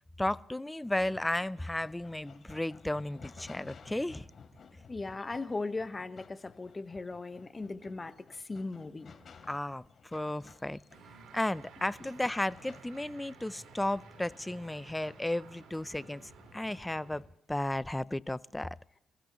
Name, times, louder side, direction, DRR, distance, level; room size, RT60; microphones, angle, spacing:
voice 1, 0.2-4.3 9.5-10.8 11.3-17.2 17.5-18.8, left 1 dB, 10° left, 17 dB, 0.5 m, -34 dB
sound 1, 0.8-17.3, left 5 dB, 50° left, 3.3 m, -57 dB
voice 2, 4.9-9.1, left 3 dB, 25° left, 11 dB, 1.2 m, -38 dB
sound 2, 10.9-17.2, right 5 dB, 70° right, 3.7 m, -54 dB
28.0 x 15.5 x 3.1 m, 0.79 s
cardioid pair, 90°, 0 cm